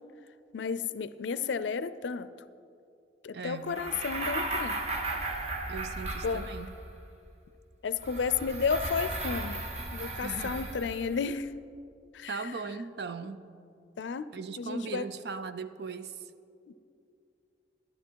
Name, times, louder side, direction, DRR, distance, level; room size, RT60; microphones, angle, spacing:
voice 1, 0.5-2.3 3.2-4.8 6.2-6.4 7.8-9.6 9.9-11.5 12.1-12.4 14.0-14.3 14.6-15.1 16.7-16.8, left 5 dB, 90° left, 14 dB, 0.4 m, -32 dB
voice 2, 3.3-3.8 5.7-6.7 10.2-10.7 12.3-13.5 14.3-16.3, right 5 dB, 65° right, 12 dB, 0.5 m, -39 dB
sound 1, 3.7-6.9 8.0-11.1, right 2 dB, 40° right, 1.1 m, -35 dB
12.0 x 11.5 x 4.6 m, 2.5 s
head